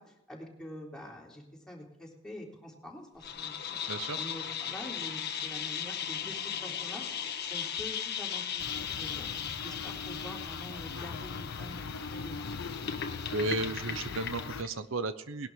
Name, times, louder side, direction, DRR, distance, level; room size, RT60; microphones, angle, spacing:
voice 1, 0.0-3.8 4.1-7.0 7.5-9.2 9.6-12.4, left 1 dB, 5° left, -3 dB, 3.5 m, -46 dB
sound 1, 3.2-14.7, left 8 dB, 55° left, 1.4 m, -37 dB
voice 2, 3.9-4.2 13.3-15.5, right 2 dB, 80° right, 11 dB, 0.8 m, -34 dB
sound 2, 8.6-14.6, left 4 dB, 75° left, 0.6 m, -41 dB
19.5 x 11.5 x 3.8 m, 0.92 s
head